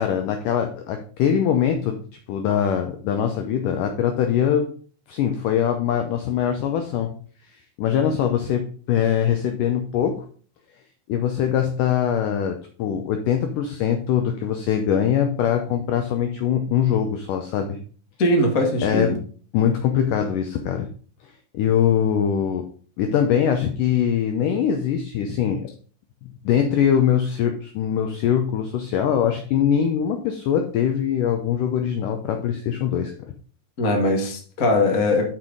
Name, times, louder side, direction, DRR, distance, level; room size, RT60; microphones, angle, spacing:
voice 1, 0.0-2.0 2.3-4.7 5.1-7.1 7.8-10.2 11.1-17.8 18.8-19.2 19.5-20.9 21.5-22.7 23.0-25.6 26.2-33.1, left 9 dB, 80° left, 5 dB, 1.9 m, -22 dB
voice 2, 18.2-19.1 33.8-35.2, left 1 dB, 60° left, 1 dB, 0.9 m, -20 dB
6.2 x 6.1 x 5.2 m, 0.44 s
omnidirectional pair, 4.6 m